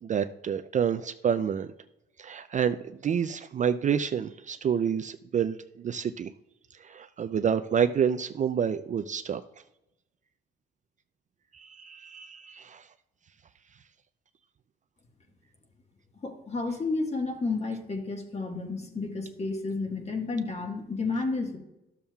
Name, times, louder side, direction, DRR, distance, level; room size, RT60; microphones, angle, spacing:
voice 1, 0.0-1.7 2.2-2.8 3.0-6.3 6.8-9.4 11.5-12.8, right 7 dB, 40° right, 9 dB, 0.4 m, -28 dB
voice 2, 16.2-21.6, left 3 dB, 35° left, 3 dB, 1.4 m, -31 dB
12.5 x 7.1 x 2.3 m, 0.92 s
cardioid pair, 90°, 20 cm